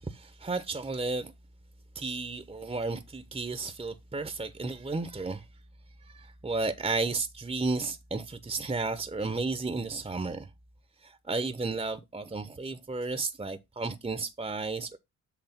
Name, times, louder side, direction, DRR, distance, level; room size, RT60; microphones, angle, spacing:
voice 1, 0.0-1.3 1.9-5.4 6.0-10.5 11.0-15.0, right 3 dB, 15° right, 0.9 m, -33 dB
8.1 x 3.3 x 5.9 m
hypercardioid pair, 50°, 45 cm